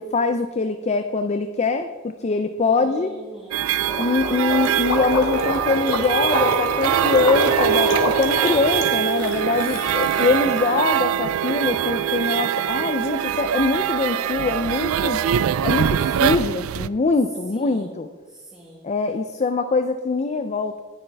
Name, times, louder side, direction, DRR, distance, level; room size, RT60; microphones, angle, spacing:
voice 1, 0.0-3.2 4.0-15.2 15.6-18.1 18.8-20.8, left 3 dB, 30° left, 9 dB, 0.4 m, -23 dB
voice 2, 2.8-3.7 9.8-10.3 17.5-18.0 18.3-18.8, equal, 5° right, -7 dB, 1.7 m, -42 dB
sound 1, 3.5-16.9, right 10 dB, 80° right, 0.3 m, -23 dB
Gurgling, 3.9-10.8, left 2 dB, 90° left, 1.9 m, -26 dB
19.0 x 7.2 x 3.4 m, 1.4 s
head